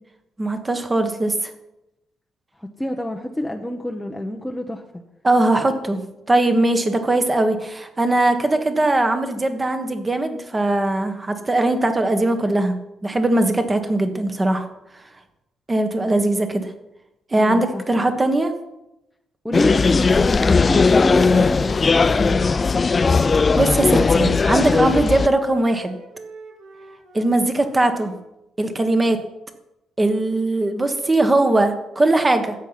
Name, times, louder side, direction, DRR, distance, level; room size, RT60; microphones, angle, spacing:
voice 1, 0.4-1.5 5.2-6.0 6.3-12.7 13.0-14.7 15.7-16.7 17.3-18.5 23.5-26.0 27.1-28.1 28.6-29.2 30.0-32.5, right 2 dB, 20° right, 7 dB, 1.4 m, -20 dB
voice 2, 2.6-5.0 17.4-17.9 19.4-22.6, left 1 dB, 5° left, 1 dB, 0.9 m, -27 dB
sound 1, 19.5-25.3, left 4 dB, 30° left, 0.4 m, -17 dB
Wind instrument woodwind instrument, 21.2-28.2, right 2 dB, 60° right, 2.5 m, -42 dB
13.0 x 8.5 x 5.8 m, 0.91 s
cardioid pair, 130°, 0 cm